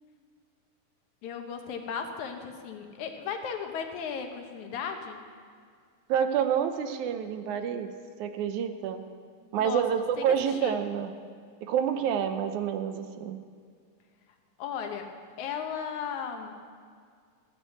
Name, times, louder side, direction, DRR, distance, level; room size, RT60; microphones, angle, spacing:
voice 1, 1.2-5.2 9.6-10.8 14.6-15.1 15.4-16.5, left 6 dB, 75° left, 4 dB, 2.4 m, -36 dB
voice 2, 6.1-7.9 8.2-9.0 9.5-11.2 11.6-13.4, right 8 dB, 80° right, 8 dB, 2.1 m, -28 dB
15.0 x 8.9 x 7.8 m, 2.1 s
omnidirectional pair, 3.6 m